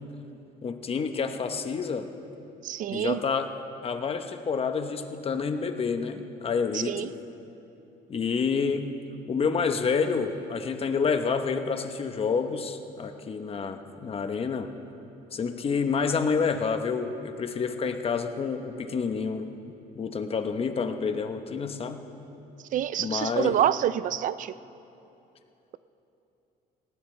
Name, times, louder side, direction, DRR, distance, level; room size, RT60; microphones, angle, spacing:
voice 1, 0.6-2.1 2.9-3.5 3.8-7.1 8.1-8.9 9.3-14.7 15.3-19.5 19.9-22.0 23.0-23.6, left 5 dB, 35° left, 7 dB, 1.0 m, -28 dB
voice 2, 2.6-3.2 6.7-7.1 22.7-24.5, right 11 dB, 50° right, 16 dB, 0.4 m, -27 dB
19.0 x 15.5 x 3.3 m, 2.9 s
cardioid pair, 110°, 17 cm